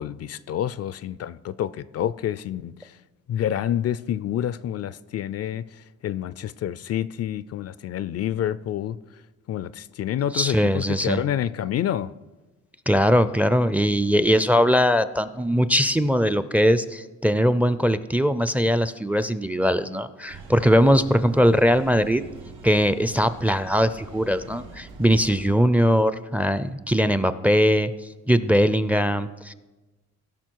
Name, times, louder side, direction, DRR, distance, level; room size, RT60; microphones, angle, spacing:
voice 1, 0.0-3.0 3.3-9.0 9.5-12.1, left 10 dB, 55° left, 0.4 m, -28 dB
voice 2, 10.3-11.2 12.9-22.2 22.6-27.9 28.3-29.5, equal, 5° right, 0.4 m, -20 dB
sound 1, 20.3-25.4, right 4 dB, 85° right, 1.6 m, -44 dB
17.0 x 5.8 x 4.6 m
cardioid pair, 90°, 30 cm